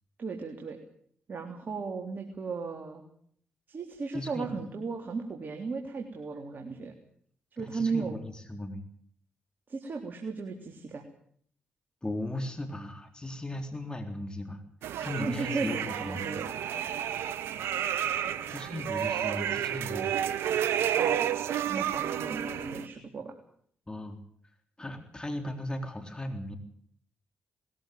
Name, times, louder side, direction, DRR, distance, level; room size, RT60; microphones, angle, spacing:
voice 1, 0.2-0.8 1.3-3.0 3.7-6.9 7.5-8.2 9.7-11.0 15.2-16.5 20.9-21.3 21.7-23.4, right 4 dB, 50° right, 3 dB, 3.5 m, -35 dB
voice 2, 4.1-4.5 7.6-8.8 12.0-14.6 15.0-16.4 18.5-20.2 23.9-24.2 24.8-26.6, left 1 dB, 20° left, 6 dB, 3.8 m, -37 dB
sound 1, 14.8-22.9, right 10 dB, 80° right, 1.1 m, -31 dB
20.5 x 14.5 x 9.4 m, 0.62 s
supercardioid pair, 45°, 4 cm